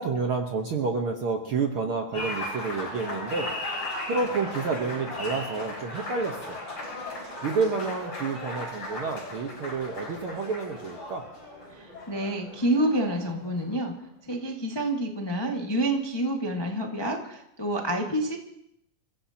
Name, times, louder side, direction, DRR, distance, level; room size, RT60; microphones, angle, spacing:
voice 1, 0.0-3.5 4.1-6.6 7.4-11.3, right 4 dB, 60° right, 3 dB, 1.4 m, -29 dB
Applause, 2.1-13.9, left 1 dB, 45° left, 7.0 m, -37 dB
voice 2, 11.7-13.9 14.2-18.4, right 1 dB, 20° left, 0 dB, 0.6 m, -28 dB
29.5 x 16.0 x 2.9 m, 0.76 s
omnidirectional pair, 3.8 m